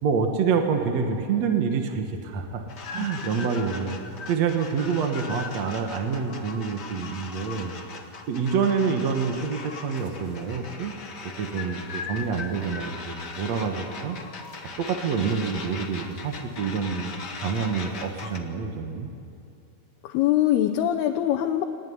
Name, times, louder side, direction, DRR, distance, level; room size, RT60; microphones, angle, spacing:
voice 1, 0.0-2.6 2.9-4.0 4.3-7.7 8.3-10.9 11.4-14.2 14.8-17.1 17.4-19.1, right 5 dB, 55° right, 4 dB, 2.0 m, -27 dB
sound 1, 2.7-18.4, left 4 dB, 60° left, 1.1 m, -39 dB
voice 2, 20.0-21.6, left 12 dB, 80° left, 4 dB, 2.8 m, -23 dB
24.5 x 19.5 x 9.6 m, 2.6 s
omnidirectional pair, 4.7 m